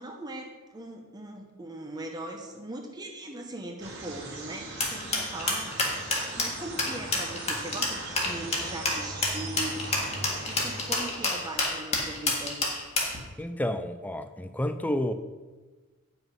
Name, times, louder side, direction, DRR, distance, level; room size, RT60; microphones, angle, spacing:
voice 1, 0.0-5.7 6.4-12.6, right 1 dB, 20° right, 2 dB, 0.9 m, -40 dB
sound 1, 3.8-11.9, right 2 dB, 50° right, 1.8 m, -40 dB
sound 2, 4.8-13.2, left 3 dB, 30° left, 1.7 m, -28 dB
voice 2, 13.4-15.1, left 1 dB, 5° left, 10 dB, 0.4 m, -30 dB
9.1 x 6.0 x 5.3 m, 1.3 s
head